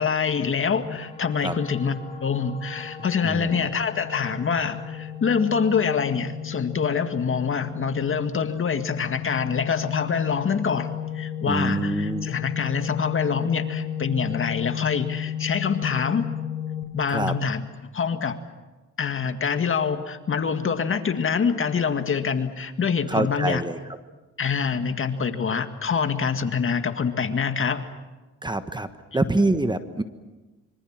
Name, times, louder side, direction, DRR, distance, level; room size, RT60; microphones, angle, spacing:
voice 1, 0.0-16.3 16.9-17.6 17.9-18.4 19.0-23.6 24.4-27.9 29.1-29.2, left 6 dB, 45° left, 8 dB, 2.0 m, -25 dB
sound 1, 0.8-16.8, left 9 dB, 20° left, 5.4 m, -34 dB
voice 2, 3.2-3.7 11.5-12.3 17.1-17.3 23.0-23.8 28.4-28.9 29.1-30.0, right 2 dB, 15° right, 10 dB, 1.3 m, -25 dB
25.5 x 25.0 x 7.6 m, 1.2 s
cardioid pair, 90°, 30 cm